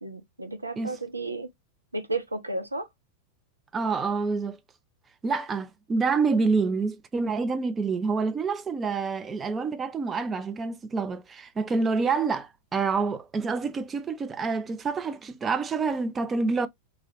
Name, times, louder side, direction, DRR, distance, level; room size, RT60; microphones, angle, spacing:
voice 1, 0.0-1.5 1.9-2.9, right 2 dB, 80° right, 0.5 m, -33 dB
voice 2, 3.7-4.6 5.2-16.7, right 4 dB, 20° right, 0.4 m, -27 dB
2.9 x 2.3 x 2.9 m
figure-of-eight pair, 90°, 0 cm